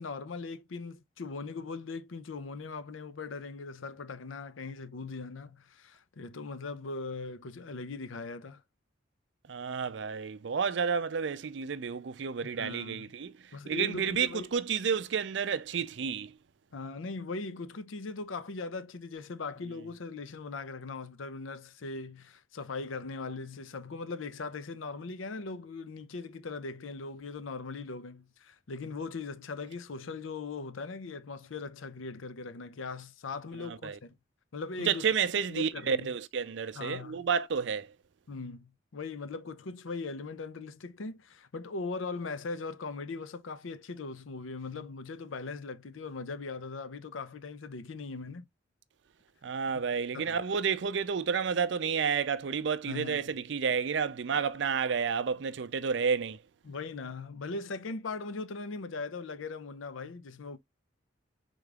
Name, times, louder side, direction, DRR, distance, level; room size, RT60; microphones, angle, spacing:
voice 1, 0.0-8.6 12.6-13.1 13.5-14.5 16.7-34.1 34.5-35.1 35.5-36.1 36.8-37.3 38.3-48.5 49.7-49.8 50.1-50.4 52.9-53.3 56.6-60.6, left 4 dB, 85° left, 0.6 m, -40 dB
voice 2, 9.5-13.3 13.7-16.3 33.7-34.0 34.9-37.9 49.4-56.4, right 6 dB, 65° right, 0.4 m, -30 dB
4.9 x 3.8 x 2.3 m
head